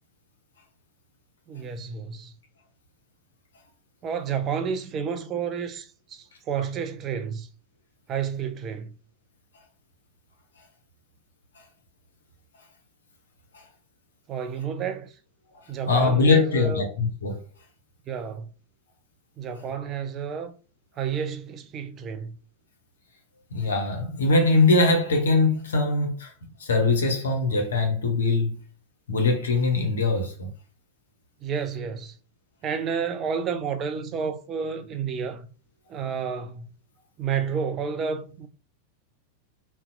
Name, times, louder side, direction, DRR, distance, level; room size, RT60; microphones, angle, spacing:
voice 1, 1.5-2.3 4.0-7.5 8.1-8.9 14.3-15.1 15.7-16.9 18.1-18.5 19.4-20.5 21.0-22.4 31.4-32.2 32.6-35.5 35.9-36.7 37.2-38.5, right 6 dB, 30° right, 0.4 m, -30 dB
voice 2, 15.9-17.4 23.5-26.3 26.6-28.6 29.1-30.5, left 3 dB, 65° left, 0.7 m, -22 dB
2.6 x 2.1 x 2.4 m
figure-of-eight pair, 90°, 0 cm